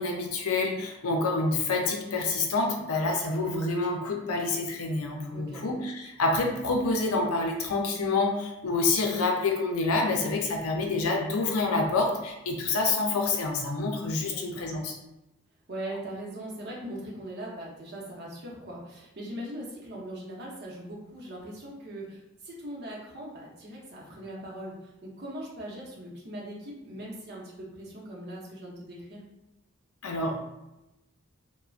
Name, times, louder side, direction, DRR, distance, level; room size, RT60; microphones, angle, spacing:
voice 1, 0.0-15.0 30.0-30.4, left 3 dB, 85° left, 2 dB, 0.5 m, -27 dB
voice 2, 5.3-5.6 14.2-14.7 15.7-29.3, right 1 dB, 50° right, -4 dB, 0.8 m, -40 dB
3.2 x 2.1 x 2.4 m, 0.94 s
head